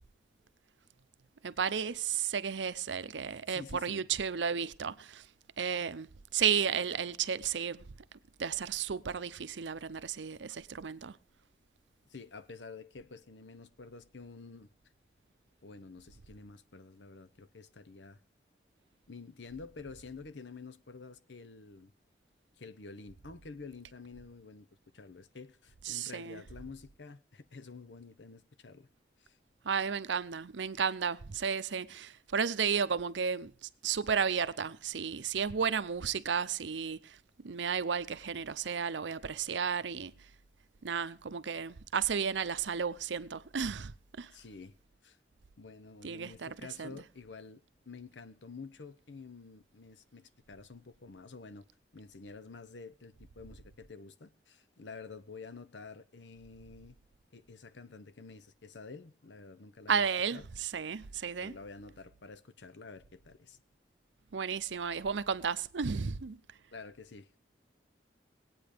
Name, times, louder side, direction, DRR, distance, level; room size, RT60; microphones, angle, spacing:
voice 1, 1.4-5.3 5.6-7.8 8.4-11.2 25.8-26.4 29.6-37.2 37.4-40.1 40.8-44.3 46.0-46.9 59.9-61.5 64.3-66.4, right 6 dB, 90° right, 0.6 m, -33 dB
voice 2, 3.5-4.0 12.1-14.7 15.6-18.2 19.1-21.9 22.6-24.7 24.9-28.9 29.2-29.4 44.3-44.8 45.0-45.2 45.6-51.7 51.9-56.9 57.3-60.5 61.4-63.6 66.7-67.4, left 4 dB, 80° left, 0.8 m, -49 dB
19.0 x 8.9 x 5.1 m
head